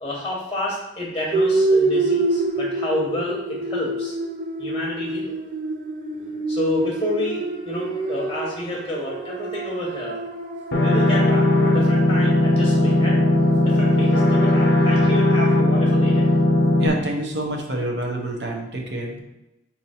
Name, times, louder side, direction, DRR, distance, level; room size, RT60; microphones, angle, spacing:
voice 1, 0.0-4.1 4.6-5.4 6.5-10.2 10.8-13.2 13.6-16.3, left 1 dB, 20° left, -4 dB, 0.9 m, -29 dB
sound 1, 1.3-15.5, right 2 dB, 45° right, 0.5 m, -27 dB
sound 2, 10.7-16.9, left 1 dB, 65° left, 0.7 m, -18 dB
voice 2, 16.8-19.2, right 1 dB, 60° right, 0 dB, 0.9 m, -27 dB
4.3 x 2.8 x 4.2 m, 0.94 s
head